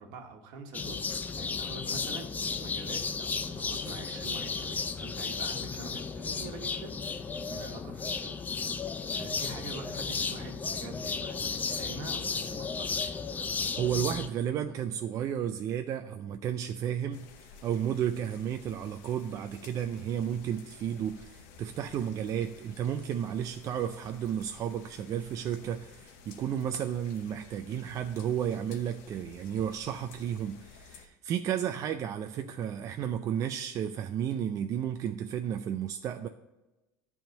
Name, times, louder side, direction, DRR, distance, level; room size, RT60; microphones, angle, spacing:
voice 1, 0.0-8.4 9.1-13.2, right 3 dB, 65° right, 4 dB, 1.4 m, -45 dB
sound 1, 0.7-14.3, left 5 dB, 20° left, 0.5 m, -34 dB
voice 2, 13.8-36.3, right 9 dB, 40° right, 7 dB, 0.4 m, -33 dB
sound 2, 17.1-31.1, left 5 dB, 75° left, 1.0 m, -53 dB
10.5 x 3.6 x 6.4 m, 1.1 s
supercardioid pair, 125°, 8 cm